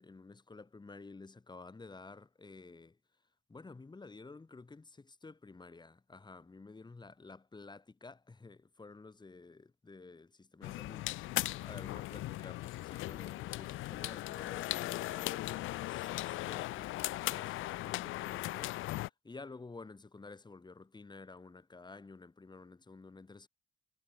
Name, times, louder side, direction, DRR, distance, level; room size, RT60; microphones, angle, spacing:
voice 1, 0.0-3.0 3.5-23.5, left 3 dB, 20° left, 2.2 m, -52 dB
sound 1, 10.6-19.1, left 17 dB, 85° left, 0.5 m, -38 dB
cardioid pair, 90°, 20 cm